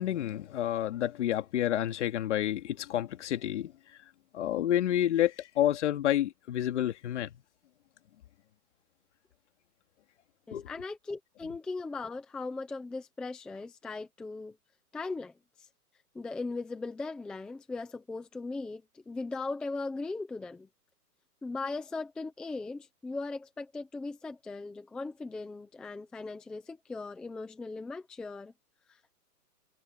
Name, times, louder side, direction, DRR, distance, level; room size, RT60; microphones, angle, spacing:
voice 1, 0.0-3.7 4.3-7.3 10.5-10.7, left 12 dB, 45° left, 2.5 m, -29 dB
voice 2, 10.5-14.6 14.9-15.3 15.6-15.7 16.1-20.7 21.4-28.5, left 3 dB, ahead, 0.7 m, -38 dB
hypercardioid pair, 160°, 48 cm